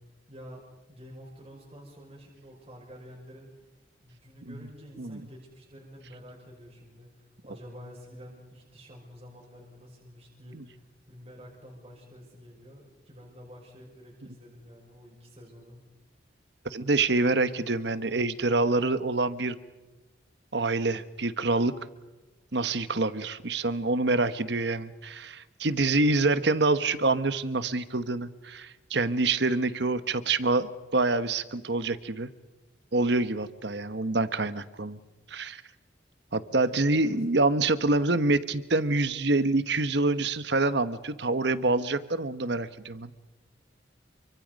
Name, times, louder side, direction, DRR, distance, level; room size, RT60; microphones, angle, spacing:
voice 1, 0.3-3.5 4.0-15.8 36.5-37.1, equal, 30° right, -3 dB, 5.9 m, -49 dB
voice 2, 16.6-19.6 20.5-21.7 22.5-32.3 32.9-35.0 35.3-35.6 36.3-43.1, right 3 dB, 65° right, 13 dB, 1.2 m, -26 dB
30.0 x 25.0 x 5.3 m, 1.1 s
head